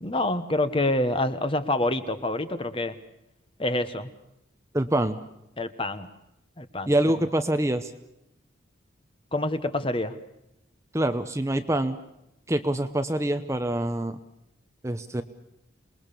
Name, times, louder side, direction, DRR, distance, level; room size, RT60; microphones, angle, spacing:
voice 1, 0.0-3.0 3.6-4.1 5.6-6.1 6.6-6.9 9.3-10.1, left 1 dB, 25° left, 10 dB, 1.2 m, -27 dB
voice 2, 4.7-5.2 6.9-7.9 10.9-12.0 12.5-14.1 14.8-15.2, right 1 dB, 15° right, 9 dB, 0.8 m, -25 dB
27.5 x 21.0 x 6.9 m, 0.84 s
head